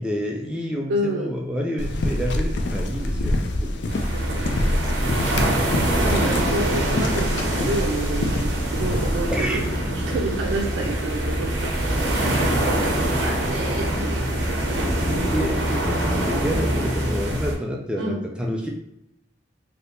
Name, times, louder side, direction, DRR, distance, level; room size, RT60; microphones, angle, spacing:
voice 1, 0.0-3.8 9.3-9.7 15.2-18.7, equal, 5° right, -1 dB, 0.4 m, -28 dB
voice 2, 0.9-1.3 4.1-15.0 18.0-18.2, right 2 dB, 85° right, -1 dB, 0.5 m, -30 dB
sound 1, 1.8-9.2, left 1 dB, 65° left, 0.4 m, -26 dB
sound 2, 3.9-17.5, right 1 dB, 65° right, 0.8 m, -24 dB
3.4 x 2.8 x 2.6 m, 0.81 s
head